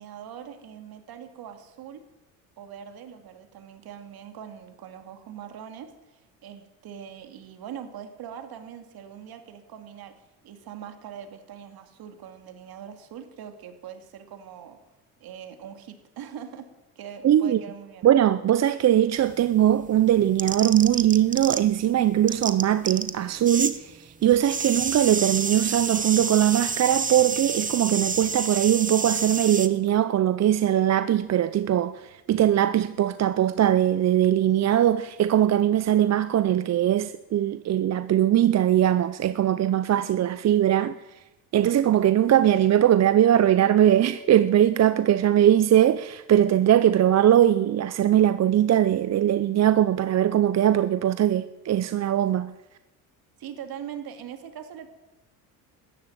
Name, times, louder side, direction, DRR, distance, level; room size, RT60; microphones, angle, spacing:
voice 1, 0.0-2.0 2.6-10.1 10.4-14.8 15.2-16.7 17.0-18.1 53.4-54.9, right 9 dB, 60° right, 2.5 m, -42 dB
voice 2, 17.2-17.6 18.0-40.9 41.5-52.5, right 11 dB, 40° right, 0.7 m, -21 dB
sound 1, 19.2-21.9 22.1-23.8 24.0-29.7, right 5 dB, 20° right, 1.1 m, -29 dB
13.5 x 11.0 x 9.2 m
supercardioid pair, 90°, 42 cm